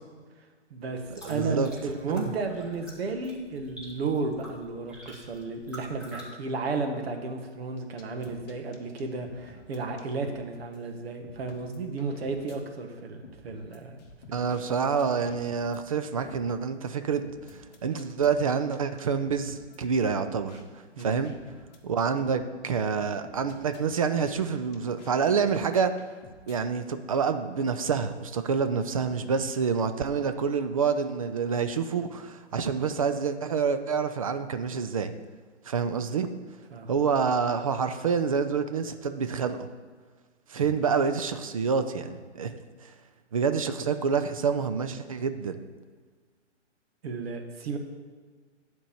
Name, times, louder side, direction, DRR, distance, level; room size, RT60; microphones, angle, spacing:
voice 1, 0.7-1.0 1.3-14.0 20.9-21.2 36.7-36.9 40.5-40.7 47.0-47.8, right 3 dB, 55° right, 4 dB, 1.5 m, -33 dB
sound 1, 0.9-6.2, equal, 5° right, 2.2 m, -48 dB
voice 2, 1.2-1.7 2.1-2.2 14.3-17.2 17.8-20.6 21.0-21.3 21.8-25.9 26.5-35.1 35.7-36.3 36.9-39.7 40.5-42.9 43.3-45.6, right 6 dB, 30° right, 9 dB, 0.4 m, -27 dB
sound 2, 8.0-10.4 10.7-10.8 11.2-12.6 13.2-14.6 15.0-15.8 16.2-16.4 17.2-20.6 21.0-22.4 22.7-22.8 23.2-26.6, left 3 dB, 35° left, 1.5 m, -50 dB
10.0 x 4.6 x 7.0 m, 1.5 s
hypercardioid pair, 140°, 36 cm